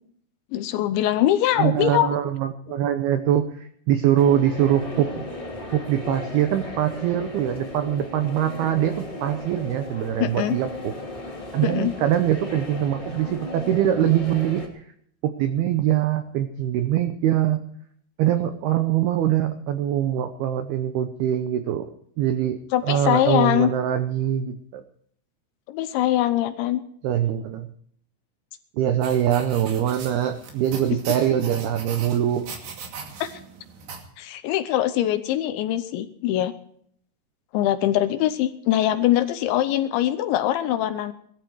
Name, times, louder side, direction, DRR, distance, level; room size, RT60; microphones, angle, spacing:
voice 1, 0.5-2.1 10.2-10.6 11.6-11.9 22.7-23.7 25.7-26.8 33.2-33.4 34.2-36.5 37.5-41.1, left 12 dB, 80° left, 11 dB, 2.9 m, -22 dB
voice 2, 1.6-5.3 5.7-10.9 11.5-14.6 15.4-17.6 18.2-21.9 22.2-22.6 22.9-24.8 27.0-27.7 28.8-32.5, right 10 dB, 85° right, 8 dB, 2.2 m, -23 dB
sound 1, 4.2-14.7, left 1 dB, 15° left, 2.0 m, -36 dB
sound 2, 29.0-34.0, right 5 dB, 60° right, 4.2 m, -39 dB
19.5 x 13.5 x 4.7 m, 0.64 s
omnidirectional pair, 5.7 m